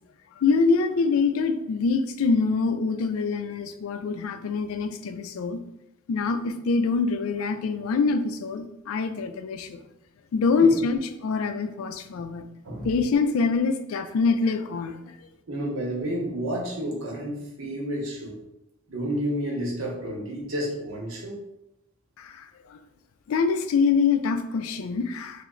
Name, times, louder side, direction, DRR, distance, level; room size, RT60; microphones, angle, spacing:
voice 1, 0.4-5.6 6.1-9.8 10.3-12.4 12.8-15.0 22.2-22.5 23.3-25.4, left 4 dB, 85° left, 7 dB, 0.3 m, -24 dB
voice 2, 15.5-18.3 18.9-21.4, equal, 70° right, -1 dB, 0.8 m, -30 dB
3.1 x 2.0 x 3.6 m, 0.88 s
head